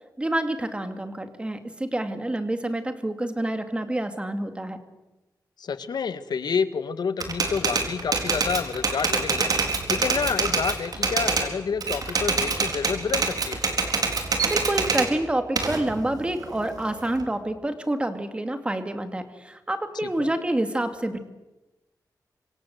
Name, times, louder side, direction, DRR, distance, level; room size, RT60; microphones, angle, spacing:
voice 1, 0.2-4.8 14.4-21.2, right 1 dB, 15° right, 8 dB, 2.4 m, -28 dB
voice 2, 5.6-13.6 20.0-20.3, left 6 dB, 80° left, 12 dB, 1.5 m, -29 dB
Typewriter, 7.2-11.5 11.8-15.1 15.6-17.2, right 4 dB, 65° right, 4.1 m, -25 dB
26.5 x 25.0 x 7.9 m, 1.1 s
wide cardioid pair, 170°, 7 cm